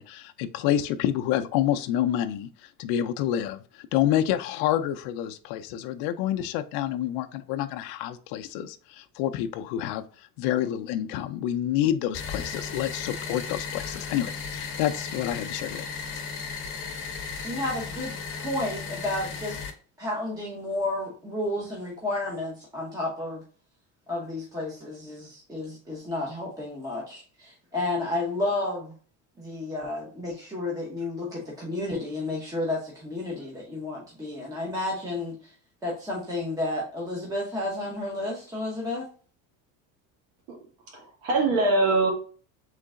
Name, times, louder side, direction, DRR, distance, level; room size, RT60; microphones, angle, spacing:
voice 1, 0.0-2.5 2.8-15.9, left 11 dB, 70° left, 7 dB, 0.5 m, -28 dB
sound 1, 12.1-19.7, left 5 dB, 35° left, 0.8 m, -35 dB
voice 2, 17.4-19.6 20.0-23.4 24.1-28.9 29.4-35.5 35.8-39.0, left 2 dB, 10° right, -4 dB, 0.9 m, -31 dB
voice 3, 40.9-42.1, right 2 dB, 85° right, 0 dB, 1.9 m, -23 dB
3.8 x 3.3 x 3.6 m, 0.41 s
cardioid pair, 165°, 38 cm